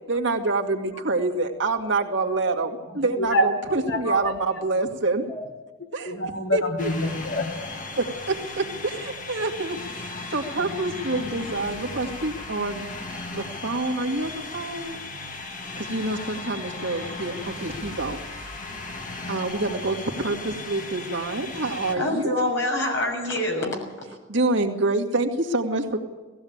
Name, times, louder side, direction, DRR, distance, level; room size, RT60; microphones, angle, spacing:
voice 1, 0.0-5.2 5.9-6.2 6.5-6.6 8.0-12.9 13.3-15.0 15.8-18.5 19.3-22.3 24.3-26.0, right 2 dB, 60° right, 2.3 m, -27 dB
voice 2, 3.9-4.3 5.3-5.4 6.0-7.5, equal, 75° left, 3.5 m, -25 dB
sound 1, 6.8-21.9, left 3 dB, 40° left, 2.0 m, -36 dB
voice 3, 21.9-23.8 25.9-26.0, left 1 dB, 60° left, 6.4 m, -25 dB
18.5 x 15.5 x 8.9 m
head